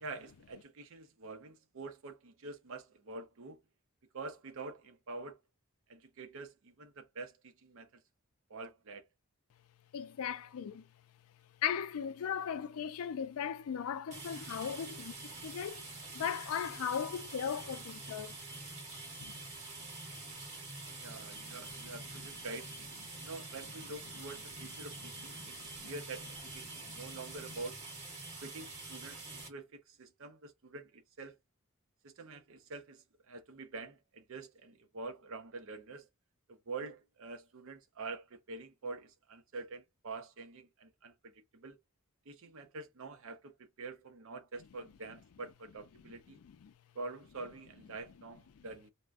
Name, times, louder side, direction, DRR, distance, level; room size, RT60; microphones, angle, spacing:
voice 1, 0.0-3.6 4.1-5.4 5.9-8.0 8.5-9.1 21.0-22.7 23.2-27.8 28.4-31.4 32.0-36.1 36.5-41.8 42.3-46.4 46.9-48.9, right 3 dB, 65° right, 0.6 m, -46 dB
voice 2, 9.9-10.9 11.6-18.3 19.2-19.4 21.4-21.6 25.4-25.9 26.6-27.0 46.4-46.7 48.5-48.7, left 8 dB, 70° left, 0.4 m, -38 dB
sound 1, 14.1-29.5, right 2 dB, 35° right, 1.2 m, -46 dB
3.4 x 2.1 x 2.4 m
head